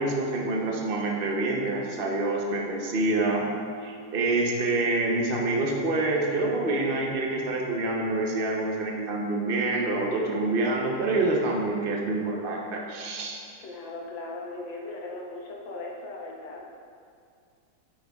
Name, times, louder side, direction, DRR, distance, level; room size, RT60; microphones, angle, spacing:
voice 1, 0.0-3.5 3.8-13.3, right 2 dB, 75° right, -1 dB, 0.5 m, -27 dB
voice 2, 13.6-16.6, left 2 dB, 80° left, -1 dB, 1.6 m, -38 dB
9.6 x 6.4 x 2.3 m, 2.3 s
omnidirectional pair, 2.0 m